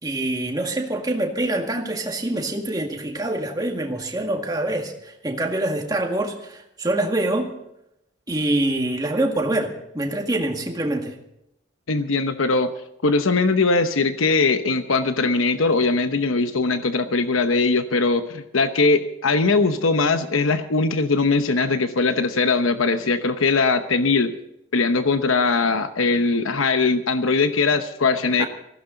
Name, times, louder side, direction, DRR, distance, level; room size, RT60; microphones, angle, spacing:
voice 1, 0.0-7.5 8.3-11.2 28.4-28.5, right 1 dB, 20° right, 2 dB, 1.9 m, -25 dB
voice 2, 11.9-12.7 13.0-24.3 24.7-28.5, left 3 dB, 90° left, 9 dB, 0.9 m, -20 dB
20.0 x 15.5 x 3.9 m, 0.81 s
head